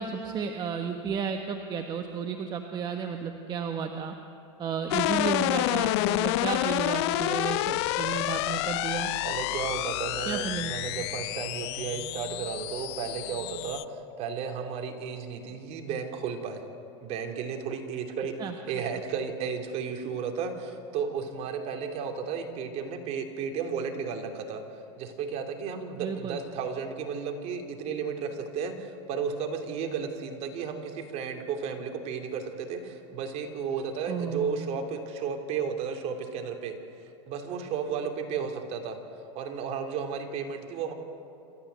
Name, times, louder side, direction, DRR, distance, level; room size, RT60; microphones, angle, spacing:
voice 1, 0.0-4.1 4.6-9.1 10.2-10.7 18.4-18.5 26.0-26.4 34.1-34.6, right 6 dB, 30° right, 4 dB, 1.3 m, -33 dB
sound 1, 4.9-13.8, left 17 dB, 60° left, 0.6 m, -29 dB
voice 2, 9.2-16.6 17.0-18.4 18.7-24.6 25.0-36.8 37.3-39.0 39.3-40.9, right 6 dB, 45° right, 4 dB, 2.9 m, -33 dB
27.5 x 14.0 x 8.0 m, 2.8 s
supercardioid pair, 130°, 16 cm